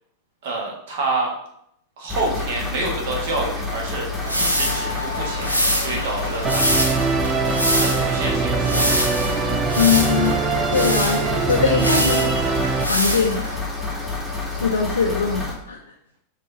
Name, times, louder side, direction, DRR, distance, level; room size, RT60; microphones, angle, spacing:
voice 1, 0.4-1.3 2.0-4.1 4.3-7.0 7.7-9.2, right 2 dB, 55° right, -1 dB, 1.3 m, -28 dB
sound 1, 2.1-15.5, left 3 dB, ahead, 1.2 m, -29 dB
sound 2, 4.2-13.6, equal, 90° right, 0.6 m, -25 dB
Musical instrument, 6.4-12.8, right 5 dB, 20° right, 0.3 m, -23 dB
voice 2, 9.8-10.4 10.7-12.3 12.9-13.4 14.5-15.8, left 6 dB, 70° left, 1 dB, 0.4 m, -21 dB
4.7 x 2.9 x 3.7 m, 0.72 s
figure-of-eight pair, 90°, 0 cm